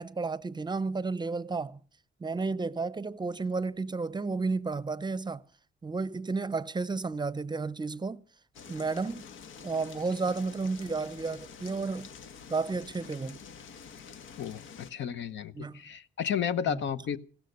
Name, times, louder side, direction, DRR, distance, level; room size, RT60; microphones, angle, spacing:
voice 1, 0.0-1.8 2.2-5.4 5.8-8.2 8.7-9.2 9.6-12.1 12.5-13.4 15.5-15.8 16.7-16.8, right 4 dB, 20° right, 0.6 m, -32 dB
sound 1, 8.5-14.9, left 6 dB, 85° left, 1.3 m, -48 dB
voice 2, 14.9-17.2, left 8 dB, 65° left, 1.0 m, -32 dB
16.5 x 12.5 x 6.7 m
cardioid pair, 90°, 20 cm